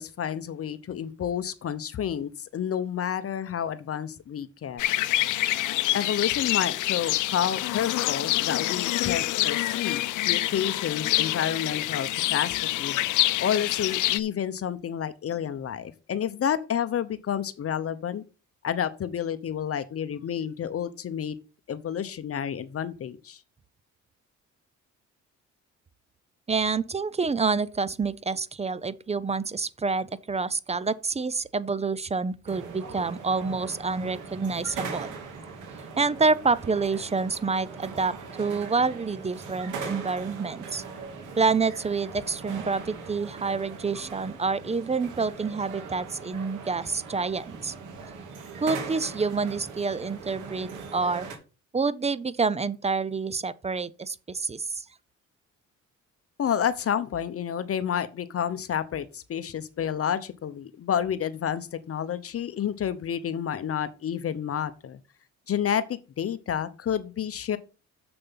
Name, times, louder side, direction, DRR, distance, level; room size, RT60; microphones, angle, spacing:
voice 1, 0.0-4.8 5.9-13.0 13.4-18.2 18.6-21.4 21.7-23.4 56.4-65.0 65.5-67.6, left 9 dB, 50° left, 0.8 m, -30 dB
sound 1, 4.8-14.2, left 16 dB, 85° left, 0.6 m, -26 dB
voice 2, 26.5-35.1 36.0-40.8 41.4-47.7 48.6-51.3 51.7-54.8, right 4 dB, 20° right, 0.6 m, -28 dB
sound 2, 32.5-51.4, right 5 dB, 85° right, 2.5 m, -40 dB
7.1 x 6.6 x 5.7 m
cardioid pair, 90°, 30 cm